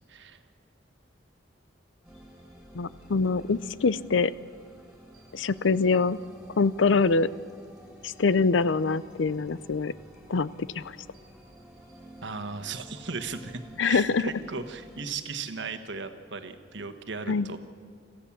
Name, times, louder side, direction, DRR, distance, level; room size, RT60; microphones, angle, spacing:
sound 1, 2.0-15.1, equal, 5° right, 3.5 m, -51 dB
voice 1, 2.7-4.3 5.3-6.2 6.6-7.3 8.0-9.9 10.3-10.9 13.8-14.2 17.3-17.5, left 4 dB, 80° left, 17 dB, 0.6 m, -24 dB
voice 2, 12.2-17.6, right 4 dB, 70° right, 8 dB, 1.4 m, -36 dB
26.0 x 15.0 x 7.3 m, 2.2 s
head